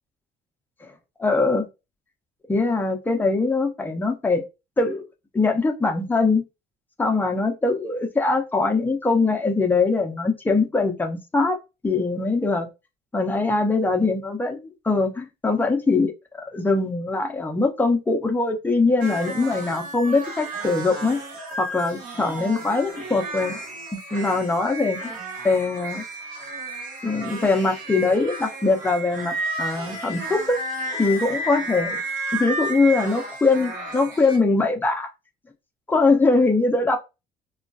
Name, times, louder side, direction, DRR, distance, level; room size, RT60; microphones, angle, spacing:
voice 1, 1.2-1.7 2.5-4.4 4.8-5.0 5.3-6.4 7.0-11.6 11.8-12.7 13.1-16.1 16.4-21.2 21.6-23.6 24.1-25.1 25.4-26.0 27.0-30.6 31.0-32.0 32.3-35.1 35.9-37.0, left 3 dB, 10° left, 0.6 m, -22 dB
sound 1, 19.0-34.4, right 2 dB, 50° right, 1.0 m, -32 dB
3.0 x 2.3 x 2.5 m
cardioid pair, 110°, 17 cm